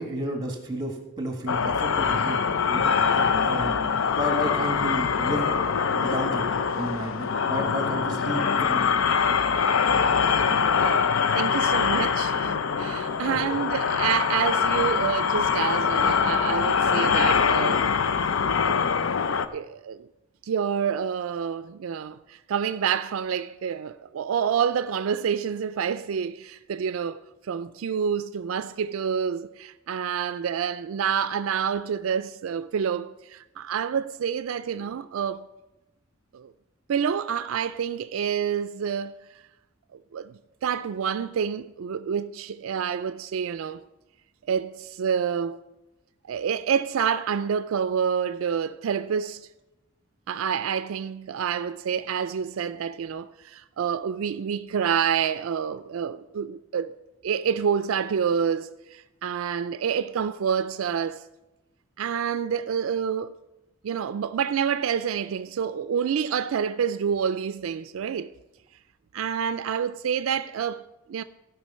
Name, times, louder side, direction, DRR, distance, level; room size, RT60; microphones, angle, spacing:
voice 1, 0.0-2.4 2.7-5.5 5.9-9.0, right 1 dB, 20° right, 1.6 m, -32 dB
sound 1, 1.5-19.5, left 6 dB, 80° left, 0.5 m, -23 dB
voice 2, 11.3-17.9 18.6-18.8 19.5-20.1 20.4-27.2 27.5-35.5 36.3-36.5 36.9-39.1 40.1-43.8 44.5-45.6 46.3-49.5 50.3-56.9 57.2-61.2 62.0-63.3 63.8-68.3 69.1-71.2, right 7 dB, 90° right, 0.4 m, -28 dB
15.0 x 5.8 x 5.5 m
head